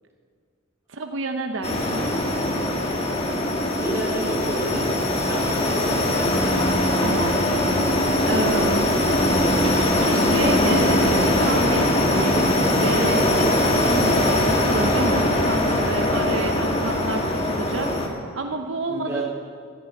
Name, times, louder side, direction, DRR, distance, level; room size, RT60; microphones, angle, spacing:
voice 1, 0.9-2.1 7.0-7.3 8.2-8.9 9.6-12.5 12.8-18.1 18.3-19.2, right 2 dB, 75° right, 5 dB, 0.9 m, -29 dB
sound 1, 1.6-18.1, left 1 dB, 30° left, 1.7 m, -21 dB
voice 2, 3.8-6.3 18.9-19.2, equal, 15° right, -5 dB, 4.2 m, -30 dB
15.5 x 13.5 x 5.4 m, 2.1 s
head